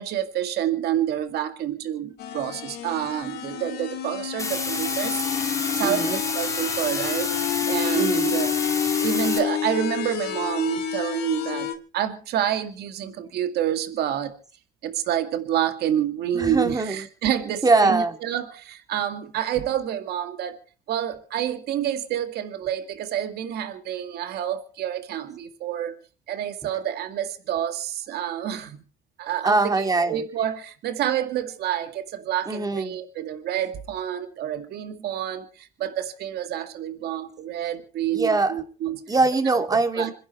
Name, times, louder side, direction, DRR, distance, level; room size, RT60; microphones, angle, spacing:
voice 1, 0.0-5.2 5.8-8.5 9.0-14.3 14.8-20.6 20.9-26.0 26.3-28.8 29.2-39.0 40.0-40.1, right 10 dB, 70° right, 7 dB, 2.1 m, -28 dB
sound 1, 2.2-11.8, left 9 dB, 70° left, 2.5 m, -29 dB
sound 2, 4.4-9.4, left 3 dB, 20° left, 3.2 m, -29 dB
voice 2, 5.8-6.2 7.9-8.3 16.3-17.1 17.5-18.1 29.4-30.2 32.5-32.9 38.1-38.6 39.1-40.1, right 3 dB, 20° right, 6 dB, 2.5 m, -22 dB
26.5 x 11.0 x 4.4 m, 0.39 s
cardioid pair, 110°, 17 cm